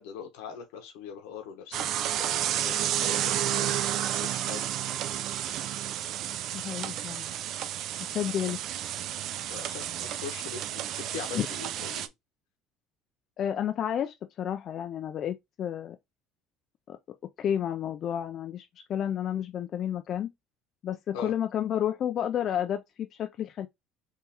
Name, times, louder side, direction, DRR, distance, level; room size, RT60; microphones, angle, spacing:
voice 1, 0.0-4.6 9.5-12.1 21.1-21.3, left 6 dB, 80° left, 1.1 m, -42 dB
sound 1, 1.7-12.1, right 11 dB, 60° right, 0.3 m, -31 dB
voice 2, 6.5-7.2 8.0-8.6 11.4-11.5 13.4-16.0 16.9-17.0 17.4-20.3 20.8-23.7, left 10 dB, 50° left, 0.3 m, -31 dB
3.7 x 2.7 x 2.8 m
supercardioid pair, 90°, 0 cm